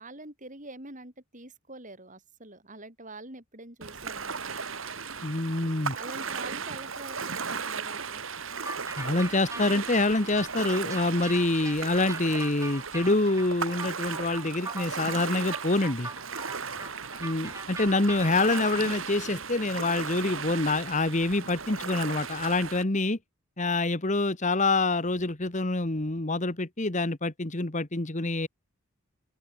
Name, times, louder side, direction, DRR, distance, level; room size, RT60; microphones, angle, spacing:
voice 1, 0.0-4.5 5.9-8.2, right 2 dB, 35° right, 7.8 m, -45 dB
Ocean, 3.8-22.8, right 5 dB, 65° right, 2.8 m, -36 dB
voice 2, 5.2-5.9 9.0-16.1 17.2-23.2 23.6-28.5, left 2 dB, 35° left, 1.5 m, -26 dB
sound 1, 8.6-18.9, right 3 dB, 15° right, 4.4 m, -41 dB
open air
head